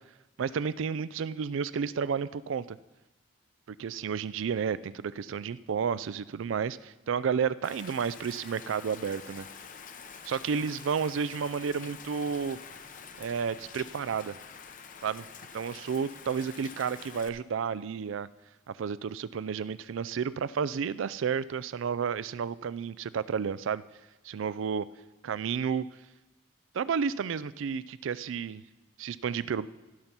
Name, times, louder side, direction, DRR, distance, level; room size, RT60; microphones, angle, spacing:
voice 1, 0.4-2.8 3.7-9.5 10.2-12.6 13.2-14.4 15.0-15.2 15.5-18.3 18.7-23.8 24.2-24.9 25.2-25.9 26.7-28.6 29.0-29.7, right 6 dB, 75° right, 18 dB, 0.4 m, -31 dB
Rain, 7.6-17.3, left 6 dB, 40° left, 0.7 m, -47 dB
16.0 x 5.6 x 6.0 m, 1.0 s
head